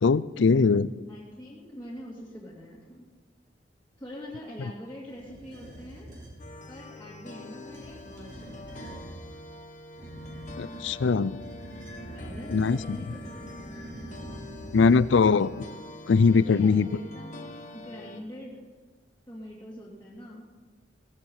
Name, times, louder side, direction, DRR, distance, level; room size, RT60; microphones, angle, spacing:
voice 1, 0.0-0.9 10.6-11.4 12.5-13.0 14.7-15.5 16.1-16.9, left 4 dB, 75° left, 18 dB, 0.5 m, -21 dB
voice 2, 1.1-3.1 4.0-6.1 6.7-8.9 12.1-13.8 16.0-18.6 19.3-20.4, equal, 10° left, -7 dB, 2.8 m, -44 dB
sound 1, 5.1-6.4 7.5-9.2 9.9-15.5, right 1 dB, 50° right, 6.6 m, -44 dB
sound 2, 6.4-18.2, left 2 dB, 45° left, 1.5 m, -45 dB
17.5 x 13.0 x 5.7 m, 1.4 s
head